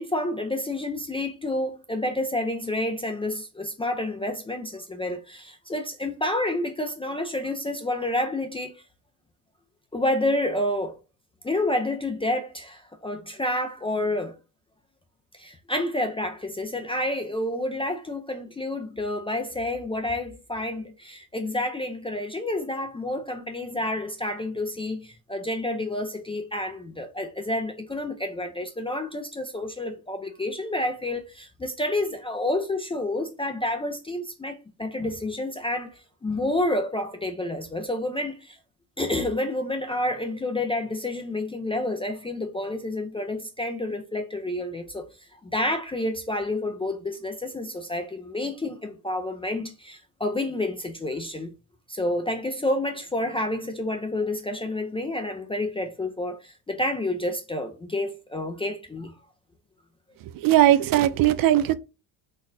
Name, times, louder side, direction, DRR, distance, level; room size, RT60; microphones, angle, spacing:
voice 1, 0.0-8.8 9.9-11.0 11.4-14.3 15.3-38.6 39.0-51.5 51.9-59.1, left 1 dB, 15° left, 0.4 m, -29 dB
voice 2, 60.3-61.7, right 13 dB, 50° right, 0.5 m, -19 dB
4.1 x 2.0 x 2.5 m
cardioid pair, 115°, 45 cm